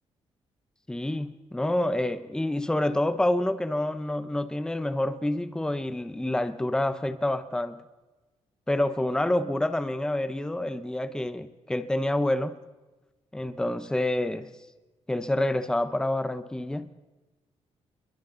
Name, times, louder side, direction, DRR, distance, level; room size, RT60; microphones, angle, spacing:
voice 1, 0.9-7.8 8.7-12.5 13.3-14.5 15.1-16.9, left 1 dB, 5° left, 10 dB, 0.9 m, -27 dB
29.5 x 22.5 x 4.0 m, 1.2 s
cardioid pair, 140°, 12 cm